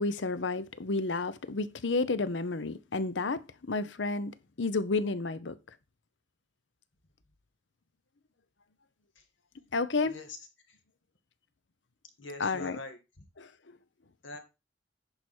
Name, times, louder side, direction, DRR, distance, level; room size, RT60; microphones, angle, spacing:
voice 1, 0.0-5.6 9.7-10.2 12.4-12.8 13.4-13.8, left 3 dB, 65° left, 0.8 m, -31 dB
voice 2, 12.2-13.2 14.2-14.4, left 2 dB, 80° left, 2.2 m, -44 dB
10.5 x 4.9 x 4.4 m
head